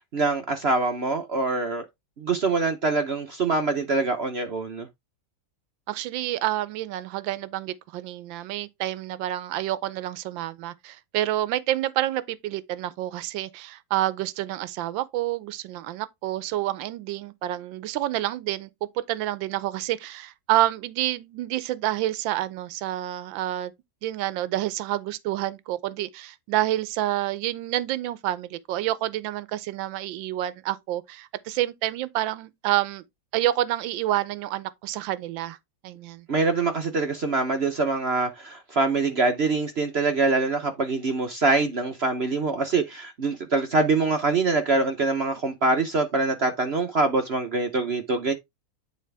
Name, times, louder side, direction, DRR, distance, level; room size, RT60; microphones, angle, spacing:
voice 1, 0.1-1.8 2.2-4.9 36.3-48.3, right 3 dB, 50° right, 0.7 m, -24 dB
voice 2, 5.9-18.7 19.0-23.7 24.0-33.0 33.3-35.6 35.8-36.3, right 14 dB, 80° right, 1.4 m, -28 dB
9.3 x 4.1 x 3.4 m
omnidirectional pair, 2.1 m